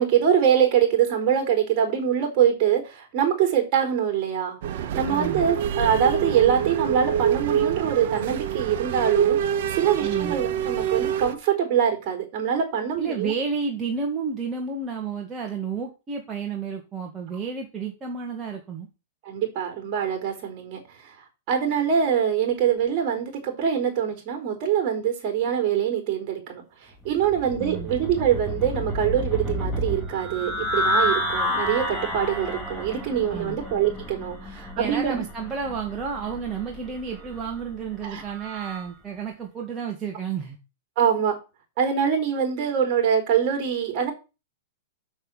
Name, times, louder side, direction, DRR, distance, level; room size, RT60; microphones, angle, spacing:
voice 1, 0.0-9.4 9.7-13.3 19.2-20.8 21.5-35.2 38.0-38.2 41.0-41.4 41.8-44.1, right 8 dB, 40° right, 4 dB, 4.6 m, -24 dB
sound 1, 4.6-11.3, right 9 dB, 60° right, 1.3 m, -26 dB
voice 2, 5.1-5.4 10.0-10.4 13.0-18.9 27.6-27.9 33.3-33.6 34.8-40.6, right 5 dB, 20° right, 0 dB, 2.0 m, -31 dB
sound 2, 27.0-38.9, equal, 5° left, 2.7 m, -30 dB
7.2 x 6.4 x 6.5 m, 0.29 s
hypercardioid pair, 130°, 0 cm